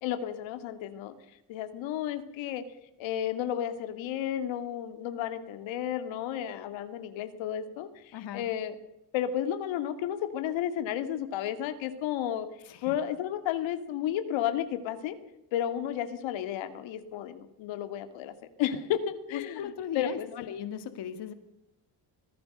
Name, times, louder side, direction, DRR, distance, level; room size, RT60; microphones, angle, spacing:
voice 1, 0.0-2.6 3.0-8.8 9.1-15.2 15.5-20.5, left 10 dB, 85° left, 9 dB, 2.3 m, -33 dB
voice 2, 8.1-8.5 12.7-12.8 19.3-21.3, left 9 dB, 60° left, 10 dB, 2.2 m, -37 dB
25.5 x 17.0 x 6.7 m, 0.85 s
cardioid pair, 115°, 45 cm